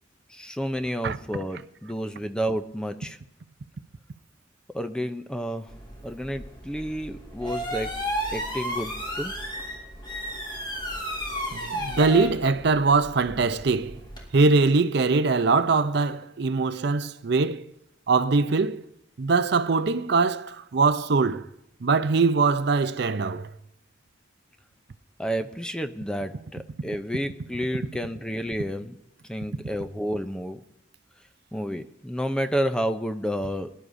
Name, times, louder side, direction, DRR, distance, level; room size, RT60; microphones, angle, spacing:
voice 1, 0.3-3.2 4.7-5.7 6.0-8.0 8.3-9.3 25.2-29.0 29.3-30.6 31.5-33.9, equal, 5° left, 0.5 m, -30 dB
sound 1, 5.7-14.3, equal, 25° left, 3.1 m, -34 dB
voice 2, 11.5-14.0 14.3-17.6 18.1-18.8 19.2-21.5 21.8-23.5, right 4 dB, 60° right, 0.5 m, -22 dB
22.5 x 11.0 x 2.6 m
head